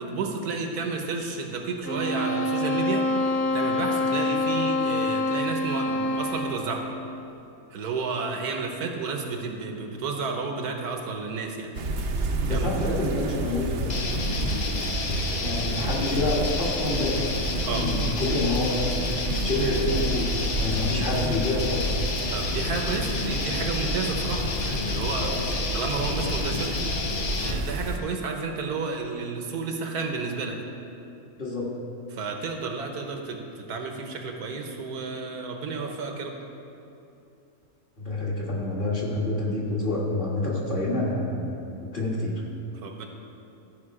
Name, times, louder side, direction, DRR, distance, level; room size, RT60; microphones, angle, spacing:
voice 1, 0.0-3.1 3.5-6.9 7.7-11.7 12.4-12.9 17.6-17.9 22.3-25.3 25.7-26.8 27.4-30.6 32.1-36.3 42.7-43.1, right 4 dB, 85° right, 3 dB, 1.5 m, -31 dB
sound 1, 1.8-6.7, left 1 dB, 15° left, 0.4 m, -26 dB
sound 2, 11.7-28.0, right 2 dB, 60° right, 0.9 m, -30 dB
voice 2, 12.4-14.1 15.4-17.3 17.7-22.0 25.2-25.5 31.4-31.6 38.0-41.6 41.9-42.4, left 2 dB, 35° left, -5 dB, 1.8 m, -28 dB
sound 3, 13.9-27.6, left 4 dB, 90° left, 0.3 m, -30 dB
14.0 x 5.3 x 4.8 m, 2.7 s
omnidirectional pair, 1.6 m